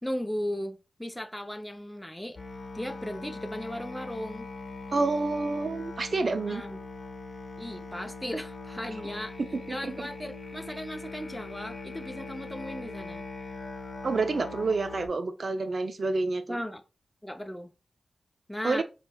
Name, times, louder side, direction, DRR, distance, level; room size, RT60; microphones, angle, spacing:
voice 1, 0.0-2.4 2.7-4.5 6.5-6.8 7.6-9.4 9.7-13.3 16.5-16.8 17.2-17.7 18.5-18.8, equal, 5° left, 0.5 m, -36 dB
Musical instrument, 2.4-15.1, left 3 dB, 55° left, 0.9 m, -41 dB
voice 2, 4.9-6.6 9.7-9.9 14.0-16.6 18.6-18.8, right 3 dB, 60° right, 0.4 m, -28 dB
4.1 x 3.3 x 2.2 m
wide cardioid pair, 80°, 0 cm